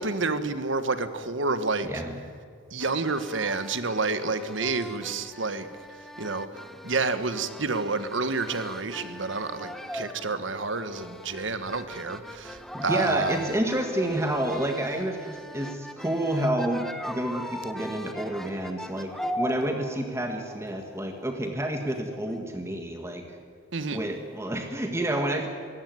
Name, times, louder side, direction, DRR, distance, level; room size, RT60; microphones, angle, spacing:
voice 1, 0.0-1.9 2.7-5.7 6.2-6.5 6.8-13.4 23.7-24.0, right 3 dB, 65° right, 11 dB, 1.4 m, -29 dB
voice 2, 1.8-2.2 12.7-19.1 19.4-23.4 23.9-25.5, right 1 dB, 15° right, 4 dB, 1.6 m, -29 dB
sound 1, 2.8-22.4, equal, ahead, 1.3 m, -40 dB
23.0 x 17.0 x 9.4 m, 2.3 s
head